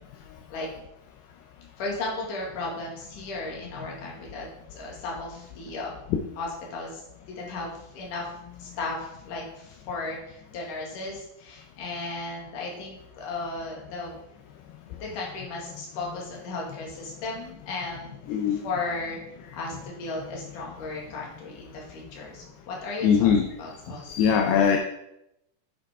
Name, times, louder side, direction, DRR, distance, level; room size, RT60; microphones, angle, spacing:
voice 1, 1.8-5.9 6.4-7.0 7.3-8.3 8.6-14.2 15.0-18.1 18.5-19.2 19.5-23.3 23.6-24.1 24.4-24.7, left 3 dB, 55° left, -2 dB, 3.1 m, -35 dB
voice 2, 18.3-18.6 23.0-23.4 24.1-24.8, left 7 dB, 80° left, 3 dB, 2.6 m, -20 dB
8.3 x 8.2 x 3.6 m, 0.84 s
omnidirectional pair, 4.9 m